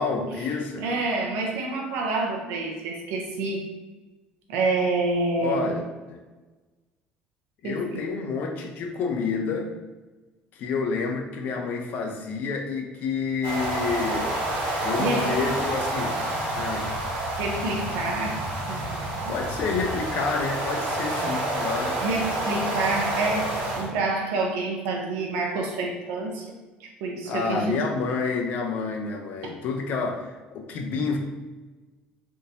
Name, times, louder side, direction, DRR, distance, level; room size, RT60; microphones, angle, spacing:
voice 1, 0.0-0.8 5.4-6.2 7.6-9.7 10.5-14.3 14.8-16.2 16.5-16.9 19.3-22.0 27.3-31.2, left 4 dB, 55° left, 3 dB, 0.5 m, -29 dB
voice 2, 0.8-3.7 4.5-5.7 7.6-8.1 15.0-15.4 17.4-18.4 18.7-19.3 22.0-26.5 26.8-27.9, right 3 dB, 90° right, 0 dB, 0.6 m, -28 dB
sound 1, 13.4-23.9, right 1 dB, 70° right, 1.0 m, -28 dB
3.6 x 2.6 x 2.8 m, 1.2 s
cardioid pair, 150°, 4 cm